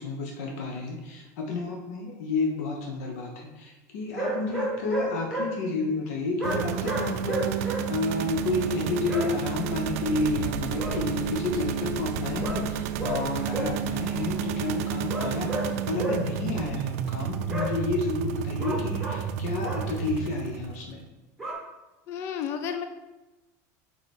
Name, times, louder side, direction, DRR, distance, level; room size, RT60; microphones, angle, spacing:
voice 1, 0.0-21.0, left 3 dB, 70° left, 1 dB, 1.0 m, -31 dB
sound 1, 4.1-5.5 6.4-7.8 9.1-9.3 10.8-11.0 12.4-12.6 13.0-13.2 13.5-13.7 15.1-15.7 16.0-16.2 17.5-17.7 18.6-19.2 19.6-19.8 21.4-21.5, right 1 dB, ahead, 1.2 m, -30 dB
sound 2, 6.4-20.9, right 9 dB, 75° right, 0.4 m, -31 dB
voice 2, 22.1-22.8, left 8 dB, 30° left, 8 dB, 0.3 m, -31 dB
5.1 x 4.8 x 4.3 m, 1.1 s
cardioid pair, 180°, 8 cm